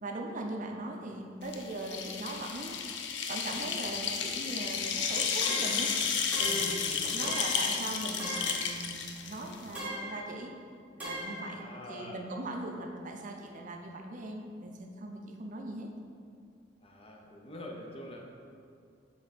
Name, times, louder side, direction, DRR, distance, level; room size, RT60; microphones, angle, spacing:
voice 1, 0.0-5.9 6.4-10.5 11.0-15.9, right 2 dB, 45° right, 2 dB, 0.6 m, -40 dB
voice 2, 0.7-1.1 5.4-5.7 6.4-7.3 11.5-12.3 16.8-18.3, left 1 dB, 30° left, 0 dB, 0.8 m, -45 dB
sound 1, 1.4-9.9, left 6 dB, 70° left, 0.5 m, -32 dB
sound 2, 5.4-5.9 6.3-6.8 7.2-7.7 8.2-8.6 9.7-10.2 11.0-11.4, right 1 dB, 10° right, 1.6 m, -38 dB
7.8 x 3.8 x 4.1 m, 2.3 s
head